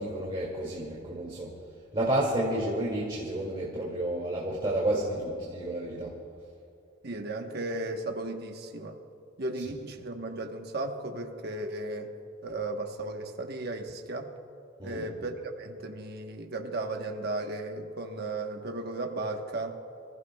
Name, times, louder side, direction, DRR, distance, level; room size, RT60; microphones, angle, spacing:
voice 1, 0.0-1.5 1.9-6.1 9.6-9.7 14.8-15.1, right 1 dB, 25° right, -5 dB, 2.3 m, -30 dB
voice 2, 7.0-9.0 9.4-12.1 12.4-14.3 14.8-19.8, right 2 dB, 55° right, 3 dB, 1.2 m, -35 dB
27.5 x 15.5 x 2.3 m, 2.6 s
head